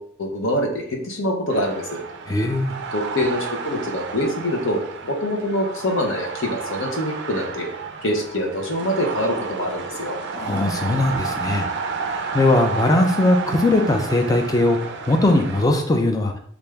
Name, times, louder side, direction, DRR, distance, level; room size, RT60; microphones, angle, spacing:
voice 1, 0.0-2.0 2.9-7.7 8.0-10.2, left 1 dB, 75° left, 1 dB, 0.8 m, -25 dB
sound 1, 1.5-15.7, right 5 dB, 55° right, 0.3 m, -31 dB
voice 2, 2.3-2.7 10.3-11.7 12.3-16.3, left 2 dB, 15° left, 4 dB, 0.4 m, -19 dB
3.2 x 2.5 x 3.4 m, 0.63 s
head